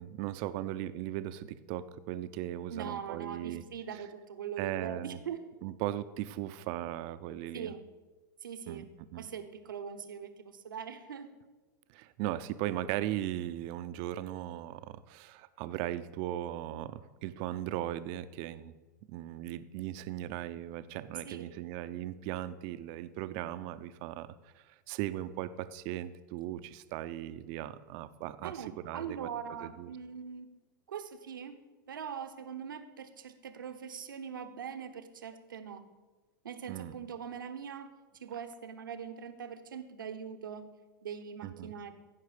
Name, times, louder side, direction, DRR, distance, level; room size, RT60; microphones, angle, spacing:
voice 1, 0.0-3.6 4.6-5.2 5.6-7.7 8.7-8.8 9.1-9.3 11.9-18.8 19.1-24.3 24.7-28.5 28.8-29.3 29.6-29.9 36.7-37.0 41.4-41.7, right 13 dB, 55° right, 12 dB, 0.6 m, -38 dB
voice 2, 2.7-5.4 7.5-7.8 8.4-8.9 9.2-11.3 21.2-21.5 28.4-30.5 30.9-31.6 31.9-35.8 36.4-40.7 41.0-41.9, right 7 dB, 85° right, 8 dB, 1.0 m, -42 dB
15.5 x 5.4 x 5.0 m, 1.2 s
hypercardioid pair, 105°, 11 cm